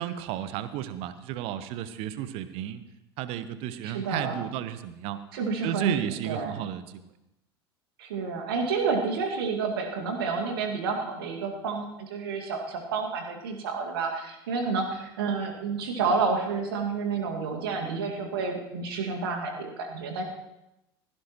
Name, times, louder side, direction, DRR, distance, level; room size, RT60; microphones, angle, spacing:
voice 1, 0.0-2.8 3.2-5.2 5.6-6.8, right 11 dB, 45° right, 12 dB, 1.0 m, -33 dB
voice 2, 3.8-4.4 5.3-6.6 8.0-20.2, right 4 dB, 65° right, 2 dB, 2.2 m, -30 dB
16.5 x 16.0 x 3.1 m, 0.89 s
figure-of-eight pair, 75°, 13 cm